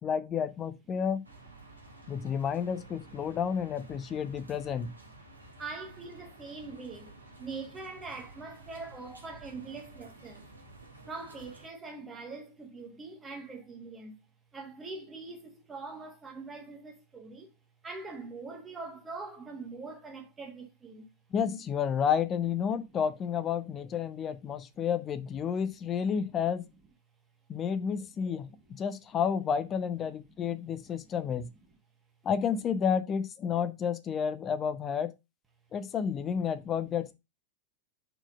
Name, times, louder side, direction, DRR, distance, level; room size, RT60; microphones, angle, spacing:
voice 1, 0.0-1.2 2.1-4.9 21.3-26.7 27.5-28.5 28.8-31.5 32.2-35.1 35.7-37.1, left 7 dB, 25° left, 0.6 m, -30 dB
sound 1, 1.2-11.7, right 2 dB, 80° right, 1.4 m, -52 dB
voice 2, 5.6-10.5 11.0-14.2 14.5-17.5 17.8-21.1 28.1-28.3 30.8-30.9, right 3 dB, 15° right, 1.4 m, -43 dB
4.5 x 4.4 x 5.1 m
figure-of-eight pair, 90°, 0 cm